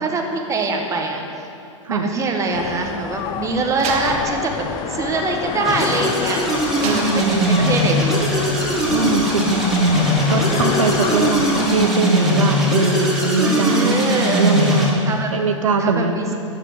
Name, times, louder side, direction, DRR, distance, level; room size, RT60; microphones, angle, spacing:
voice 1, 0.0-1.2 1.9-8.3 10.4-10.7 13.4-14.4 15.1-15.3 15.8-16.3, right 3 dB, 20° right, 2 dB, 1.3 m, -24 dB
sound 1, 2.5-11.9, left 10 dB, 25° left, 0.4 m, -29 dB
Slam, 3.8-6.2 6.8-8.0, right 3 dB, 40° right, 1.6 m, -32 dB
sound 2, 5.6-14.9, equal, ahead, 2.2 m, -20 dB
voice 2, 6.8-7.6 8.9-9.5 10.3-14.0 14.4-16.2, right 4 dB, 80° right, 6 dB, 0.8 m, -21 dB
12.5 x 5.0 x 7.7 m, 2.7 s
hypercardioid pair, 105°, 17 cm